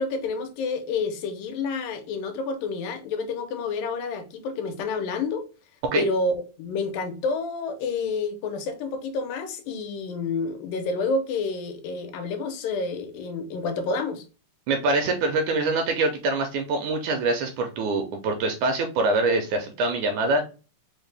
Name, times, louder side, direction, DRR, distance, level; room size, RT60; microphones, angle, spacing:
voice 1, 0.0-5.4 6.0-14.2, left 4 dB, 85° left, 2.4 m, -29 dB
voice 2, 14.7-20.5, right 2 dB, 80° right, 1.8 m, -24 dB
5.3 x 2.1 x 3.2 m
omnidirectional pair, 3.8 m